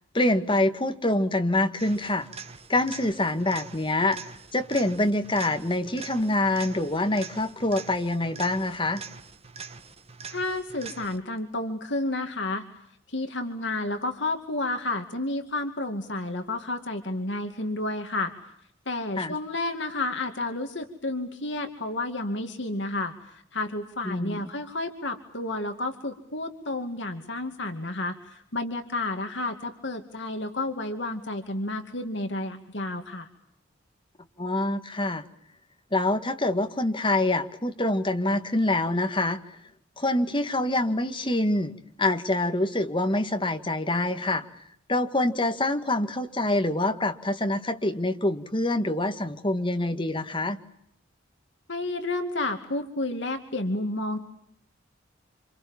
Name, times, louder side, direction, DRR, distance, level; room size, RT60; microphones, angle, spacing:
voice 1, 0.1-2.3 2.7-4.2 4.5-9.0 19.2-19.4 24.0-24.5 34.4-35.2 35.9-39.4 40.0-41.7 42.0-44.5 44.9-50.6, left 1 dB, 25° left, 6 dB, 2.0 m, -25 dB
sound 1, 1.8-11.4 19.4-19.5, right 5 dB, 30° right, 1.5 m, -44 dB
voice 2, 10.3-12.6 13.1-18.3 18.9-33.3 51.7-54.2, left 2 dB, 65° left, 5 dB, 2.5 m, -31 dB
28.5 x 27.0 x 7.3 m, 0.72 s
head